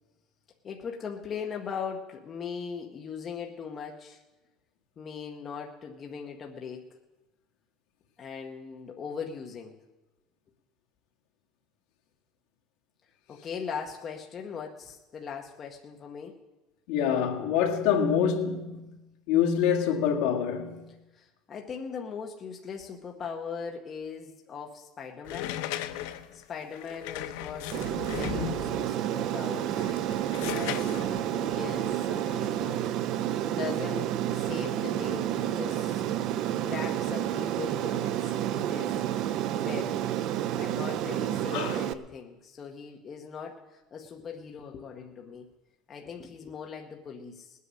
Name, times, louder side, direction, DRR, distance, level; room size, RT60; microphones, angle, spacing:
voice 1, 0.6-4.2 5.0-6.9 8.2-9.8 13.3-16.4 21.1-25.6 26.3-27.7 28.0-29.8 30.5-32.9 33.4-36.0 36.6-39.0 39.6-40.0 40.5-45.5 45.9-47.6, left 6 dB, 25° left, 0.9 m, -39 dB
voice 2, 16.9-18.9 19.3-20.8 41.5-41.8, left 8 dB, 70° left, 1.9 m, -26 dB
sound 1, 25.2-28.9 29.6-32.6, left 12 dB, 85° left, 0.7 m, -37 dB
Aircraft, 27.7-41.9, right 11 dB, 45° right, 0.5 m, -30 dB
20.0 x 8.4 x 6.3 m
cardioid pair, 170°, 0 cm